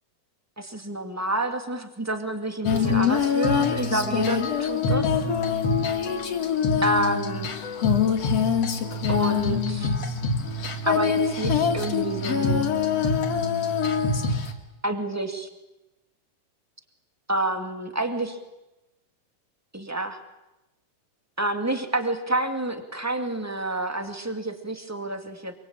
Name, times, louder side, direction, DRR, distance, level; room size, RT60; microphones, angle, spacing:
voice 1, 0.6-5.1 6.8-7.5 9.1-9.9 10.8-12.7 14.8-15.5 17.3-18.4 19.7-20.2 21.4-25.5, right 1 dB, 5° right, 7 dB, 1.5 m, -28 dB
Female singing, 2.6-14.5, left 5 dB, 50° left, 3.1 m, -24 dB
26.5 x 24.0 x 8.9 m, 0.99 s
omnidirectional pair, 4.0 m